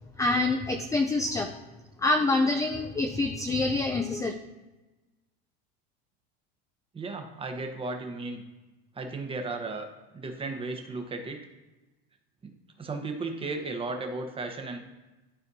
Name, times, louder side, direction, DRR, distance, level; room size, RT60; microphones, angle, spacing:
voice 1, 0.2-1.5 2.0-4.3, left 2 dB, 10° left, 5 dB, 0.4 m, -26 dB
voice 2, 6.9-8.4 8.9-9.9 10.1-11.4 12.4-12.5 12.8-14.8, right 3 dB, 20° right, 4 dB, 1.0 m, -35 dB
12.5 x 4.3 x 2.8 m, 1.1 s
supercardioid pair, 125°, 30 cm